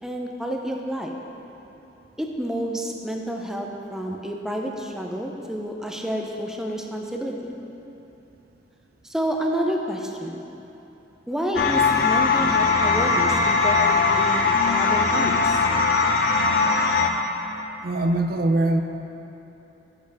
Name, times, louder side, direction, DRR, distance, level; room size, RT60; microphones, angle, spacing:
voice 1, 0.0-1.2 2.2-7.3 9.0-10.4 11.3-15.5, equal, 5° right, 1 dB, 0.5 m, -29 dB
sound 1, 11.6-17.1, left 4 dB, 55° left, 0.6 m, -20 dB
voice 2, 17.8-18.8, right 2 dB, 55° right, 6 dB, 0.4 m, -22 dB
9.7 x 6.8 x 3.5 m, 3.0 s
head